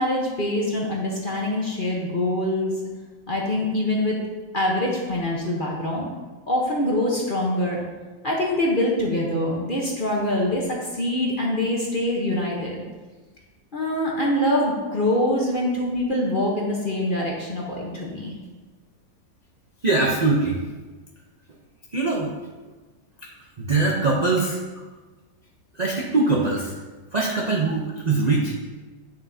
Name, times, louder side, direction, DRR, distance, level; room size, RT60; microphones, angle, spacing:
voice 1, 0.0-2.7 3.3-4.2 4.5-6.1 6.5-7.8 8.2-12.8 13.7-18.3, left 1 dB, 35° left, -2 dB, 0.9 m, -24 dB
voice 2, 19.8-20.6 21.9-22.3 23.6-24.6 25.7-26.7 27.1-28.6, right 3 dB, 60° right, -3 dB, 0.4 m, -22 dB
9.0 x 6.7 x 2.8 m, 1.3 s
omnidirectional pair, 2.1 m